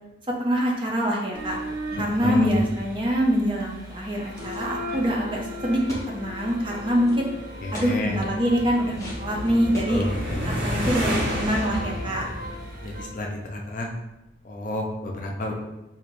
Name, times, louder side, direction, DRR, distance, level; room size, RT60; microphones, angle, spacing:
voice 1, 0.4-1.6 2.0-5.8 6.1-7.2 7.7-10.0 10.4-12.2, equal, 25° right, -2 dB, 0.6 m, -25 dB
sound 1, 1.3-13.0, left 1 dB, 50° right, 1.2 m, -38 dB
voice 2, 2.2-2.6 7.6-8.2 9.9-10.5 12.8-13.9 14.4-15.5, left 2 dB, 40° left, 0 dB, 0.5 m, -29 dB
sound 2, 4.3-5.0 5.9-6.4 7.0-7.2 7.7-8.0 8.9-10.3 10.6-11.0, equal, 15° left, 0.8 m, -40 dB
sound 3, 8.3-13.3, equal, 65° right, 1.2 m, -31 dB
4.5 x 2.7 x 2.6 m, 0.93 s
head